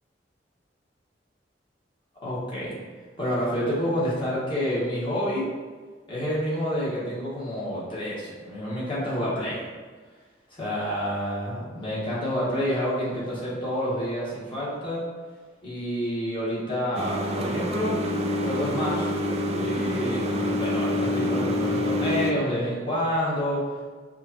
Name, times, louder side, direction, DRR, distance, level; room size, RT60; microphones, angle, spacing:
voice 1, 2.2-2.7 3.2-5.5 6.1-9.6 10.5-15.0 15.6-17.9 18.4-19.1 19.6-23.6, equal, 30° left, -8 dB, 1.2 m, -28 dB
sound 1, 16.9-22.3, left 1 dB, 35° right, 0.4 m, -26 dB
4.9 x 2.3 x 2.7 m, 1.5 s
head